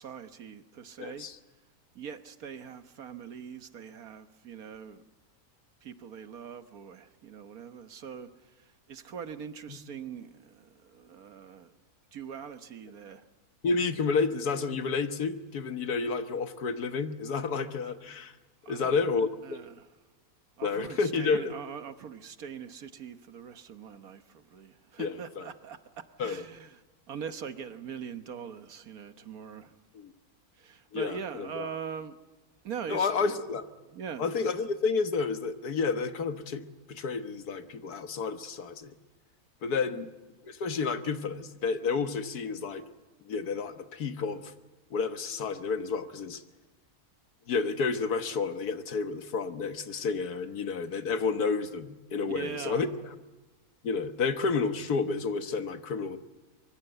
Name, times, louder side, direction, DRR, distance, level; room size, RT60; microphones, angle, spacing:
voice 1, 0.0-1.3 1.9-5.0 5.8-11.7 12.1-13.2 18.6-19.0 19.4-19.9 20.6-26.8 27.1-29.7 30.6-32.2 32.6-33.3 33.9-34.3 39.9-40.0 52.3-52.9, right 7 dB, 70° right, 10 dB, 1.6 m, -42 dB
voice 2, 1.0-1.4 9.7-9.8 13.6-18.3 18.7-19.6 20.6-21.5 25.0-25.5 26.2-26.4 29.9-30.1 30.9-31.7 32.9-33.7 34.2-39.0 39.6-40.1 40.5-42.8 43.3-44.5 44.9-46.4 47.5-52.9 53.8-56.2, left 4 dB, 90° left, 9 dB, 1.8 m, -30 dB
24.5 x 23.5 x 8.0 m, 1.2 s
omnidirectional pair, 1.6 m